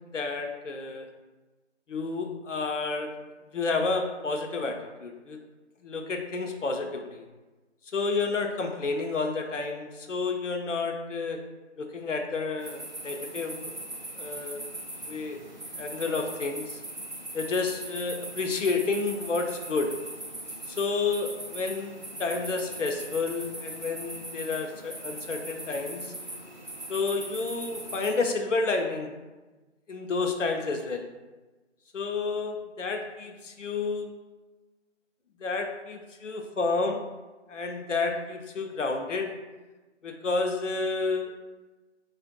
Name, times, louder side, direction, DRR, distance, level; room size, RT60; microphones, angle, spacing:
voice 1, 0.1-1.1 1.9-3.1 3.5-5.4 5.8-7.2 7.9-11.4 11.8-13.7 14.2-14.6 15.1-15.4 15.8-16.8 17.3-19.9 20.7-26.1 26.9-29.1 29.9-31.1 31.9-34.1 35.4-37.1 37.5-39.3 40.0-41.3, left 4 dB, 90° left, 4 dB, 0.7 m, -30 dB
sound 1, 12.6-28.3, right 1 dB, 40° right, 0.5 m, -40 dB
2.9 x 2.5 x 3.8 m, 1.2 s
figure-of-eight pair, 175°, 36 cm